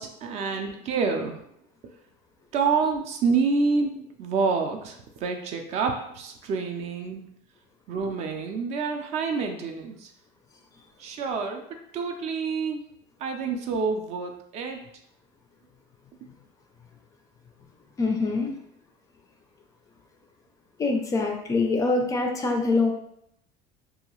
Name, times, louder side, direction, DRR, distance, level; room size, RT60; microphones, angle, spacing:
voice 1, 0.0-1.4 2.5-7.2 7.9-10.1 11.0-11.6 11.9-12.8 13.2-14.8, right 4 dB, 45° right, 4 dB, 0.4 m, -27 dB
voice 2, 18.0-18.5 20.8-22.9, left 3 dB, 20° left, 2 dB, 0.3 m, -24 dB
2.7 x 2.3 x 3.0 m, 0.74 s
cardioid pair, 145°, 16 cm